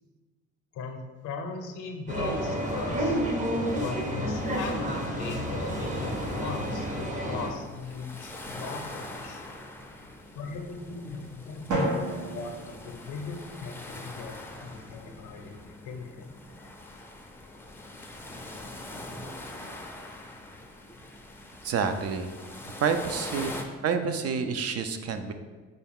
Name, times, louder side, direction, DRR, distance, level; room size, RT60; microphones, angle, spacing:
voice 1, 0.7-3.2 3.7-9.4 10.3-16.3, left 4 dB, 85° left, 4 dB, 0.6 m, -39 dB
sound 1, 2.1-7.5, equal, 25° right, 0.7 m, -30 dB
sound 2, 5.7-23.6, left 1 dB, 10° left, 0.4 m, -43 dB
Drum, 11.7-13.7, right 1 dB, 75° right, 1.0 m, -32 dB
voice 2, 21.6-22.3 22.8-23.6 23.8-25.3, right 6 dB, 55° right, 8 dB, 0.4 m, -28 dB
5.2 x 2.3 x 3.5 m, 1.4 s
cardioid pair, 90°, 30 cm